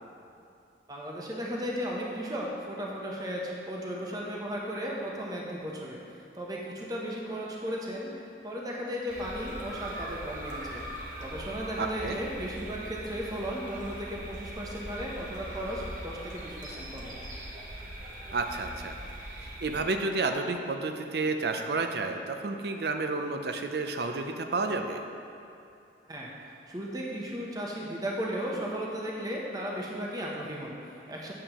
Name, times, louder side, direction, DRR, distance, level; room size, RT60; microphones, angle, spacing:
voice 1, 0.9-8.1 8.4-10.8 11.2-17.2 26.1-31.3, equal, 20° right, -3 dB, 0.8 m, -35 dB
sound 1, 9.1-19.8, right 1 dB, 45° right, 1.1 m, -41 dB
voice 2, 11.8-12.2 18.3-19.0 19.4-25.0, right 3 dB, 65° right, 6 dB, 0.5 m, -31 dB
8.7 x 7.0 x 3.0 m, 2.6 s
head